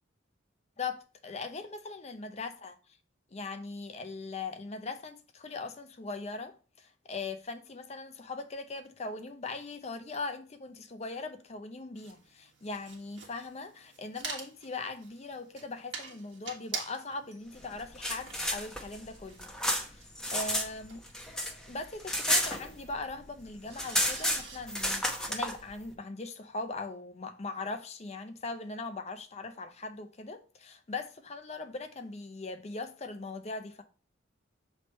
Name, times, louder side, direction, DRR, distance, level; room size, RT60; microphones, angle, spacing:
voice 1, 0.8-2.8 3.3-19.5 19.8-20.1 20.3-21.0 21.7-33.8, left 3 dB, 35° left, 0.6 m, -40 dB
sound 1, 11.9-24.6, right 5 dB, 65° right, 1.6 m, -47 dB
sound 2, 17.8-20.7 21.0-23.1 23.4-23.5 23.7-25.5, equal, 5° left, 0.8 m, -31 dB
6.9 x 3.3 x 4.4 m
head